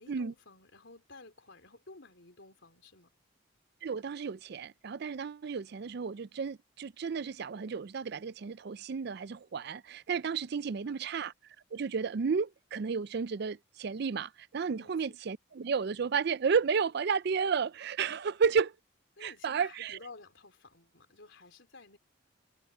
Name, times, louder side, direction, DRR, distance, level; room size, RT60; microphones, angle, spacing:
voice 1, 0.0-3.1 10.6-11.1 14.7-15.1 19.2-22.0, left 3 dB, 60° left, 4.2 m, -53 dB
voice 2, 3.8-11.3 11.7-18.7 19.2-20.0, right 6 dB, 50° right, 0.4 m, -32 dB
head